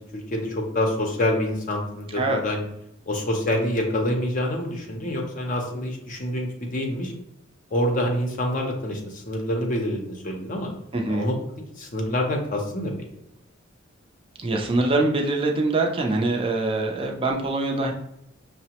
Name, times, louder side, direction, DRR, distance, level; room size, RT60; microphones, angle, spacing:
voice 1, 0.0-2.6 3.1-7.1 7.7-10.7 11.1-11.3 11.8-12.9, left 1 dB, 40° left, 1 dB, 0.6 m, -26 dB
voice 2, 10.9-11.3 14.4-17.9, right 2 dB, 25° right, 1 dB, 0.5 m, -24 dB
5.7 x 2.0 x 2.9 m, 0.79 s
head